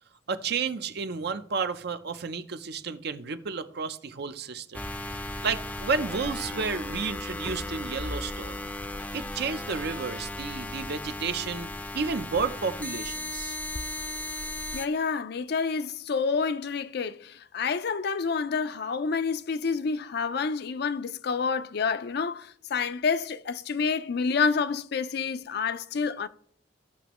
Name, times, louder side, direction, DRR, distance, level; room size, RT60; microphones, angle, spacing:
voice 1, 0.3-4.8 5.4-8.6 9.1-13.6, right 5 dB, 60° right, 0.6 m, -31 dB
sound 1, 4.7-14.9, left 2 dB, 10° left, 0.5 m, -36 dB
voice 2, 14.7-26.3, left 5 dB, 60° left, 0.5 m, -28 dB
16.0 x 5.9 x 3.0 m
head